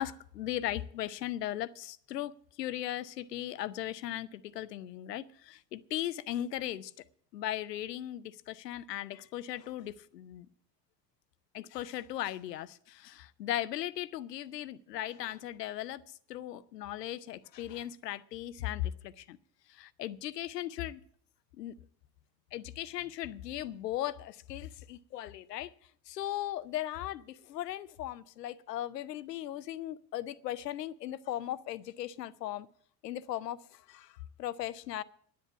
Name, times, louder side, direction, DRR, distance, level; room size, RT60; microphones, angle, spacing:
voice 1, 0.0-6.9 7.3-10.5 11.5-16.0 16.3-19.4 19.7-21.0 21.6-21.7 22.5-25.7 26.1-32.7 33.0-33.6 33.9-34.1 34.4-35.0, left 13 dB, 75° left, 16 dB, 0.7 m, -37 dB
10.5 x 10.0 x 7.2 m, 0.62 s
figure-of-eight pair, 70°, 50 cm